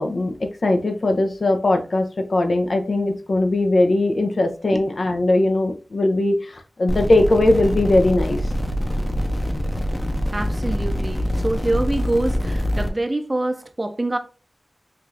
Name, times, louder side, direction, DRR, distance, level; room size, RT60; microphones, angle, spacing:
voice 1, 0.0-8.4, left 2 dB, 70° left, 0.5 m, -20 dB
sound 1, 6.9-12.9, equal, 15° left, 0.6 m, -24 dB
voice 2, 10.3-14.2, right 2 dB, 30° right, 0.5 m, -25 dB
4.7 x 2.4 x 2.5 m
wide cardioid pair, 65°, 0 cm